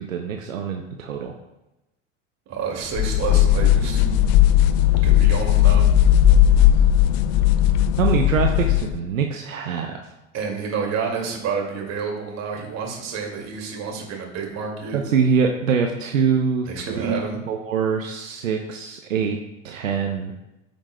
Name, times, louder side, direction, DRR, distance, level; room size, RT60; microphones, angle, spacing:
voice 1, 0.0-1.3 8.0-10.0 14.9-19.4 19.6-20.3, right 6 dB, 85° right, 3 dB, 0.7 m, -24 dB
voice 2, 2.5-4.1 5.0-5.9 10.3-15.0 16.7-17.4, right 5 dB, 40° right, 1 dB, 2.2 m, -29 dB
sound 1, 3.0-9.0, left 11 dB, 55° left, 0.5 m, -16 dB
14.0 x 5.3 x 2.2 m, 0.97 s
figure-of-eight pair, 75°, 39 cm